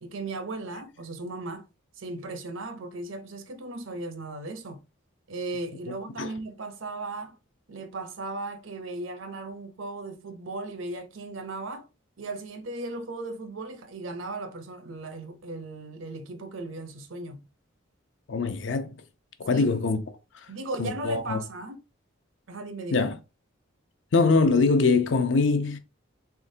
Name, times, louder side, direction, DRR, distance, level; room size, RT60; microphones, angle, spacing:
voice 1, 0.0-1.7 2.0-4.8 5.3-7.4 7.7-11.9 12.2-17.4 19.5-19.7 20.5-21.8 22.5-23.1, right 2 dB, 75° right, 0.7 m, -36 dB
voice 2, 18.3-18.9 19.4-20.0 20.8-21.4 22.9-23.2 24.1-25.8, left 4 dB, 65° left, 0.6 m, -23 dB
3.6 x 3.5 x 2.7 m
head